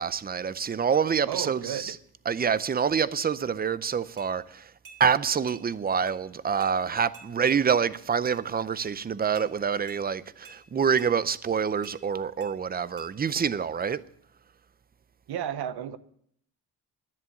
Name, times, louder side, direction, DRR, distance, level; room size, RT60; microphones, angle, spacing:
voice 1, 0.0-2.0 2.3-4.7 5.0-14.0, right 7 dB, 25° right, 0.5 m, -26 dB
voice 2, 1.3-2.0 15.3-16.0, right 10 dB, 80° right, 0.9 m, -33 dB
sound 1, 4.2-4.3 4.8-5.0 5.5-5.6 6.1-6.2 6.6-6.7 7.1-7.3 7.7-7.8 8.2-8.4 8.8-8.9 9.3-9.5 9.9-10.0 10.4-10.6 11.0-11.1 11.8-12.0 12.4-12.5 13.0-13.1, right 4 dB, 60° right, 3.5 m, -49 dB
11.0 x 10.0 x 7.7 m
cardioid pair, 110°, 39 cm